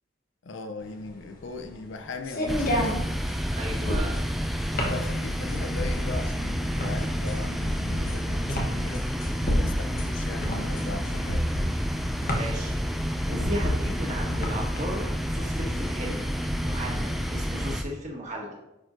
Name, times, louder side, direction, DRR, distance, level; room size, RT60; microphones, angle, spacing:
voice 1, 0.4-3.2 4.8-9.1 9.3-11.5, left 3 dB, 70° left, 8 dB, 0.6 m, -38 dB
sound 1, 0.9-14.8, equal, 45° left, 1.1 m, -31 dB
sound 2, 2.5-17.8, equal, ahead, 0.3 m, -29 dB
voice 2, 3.5-4.2 12.3-12.8 13.3-16.2 16.6-18.6, right 1 dB, 40° right, -1 dB, 1.4 m, -35 dB
10.5 x 4.4 x 2.6 m, 0.90 s
head